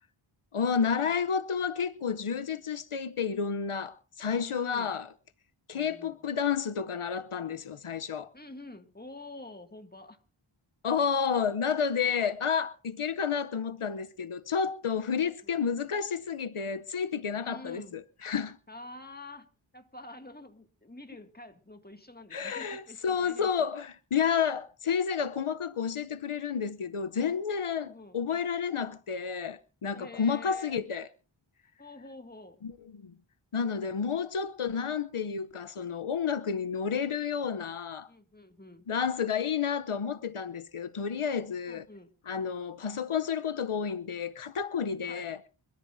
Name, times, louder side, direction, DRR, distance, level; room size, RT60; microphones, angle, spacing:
voice 1, 0.5-5.1 5.7-8.3 10.8-18.6 22.3-31.1 32.6-33.1 33.5-38.1 38.9-41.9 42.3-45.4, left 6 dB, 80° left, 0.8 m, -31 dB
voice 2, 4.4-5.0 5.7-6.2 8.3-10.2 15.4-15.6 17.4-18.0 18.7-19.5 19.7-23.7 27.8-28.2 29.9-30.8 31.8-32.6 38.1-38.9 41.7-42.1 45.1-45.4, left 2 dB, 20° left, 2.1 m, -48 dB
26.0 x 14.0 x 2.6 m
wide cardioid pair, 40°, 50 cm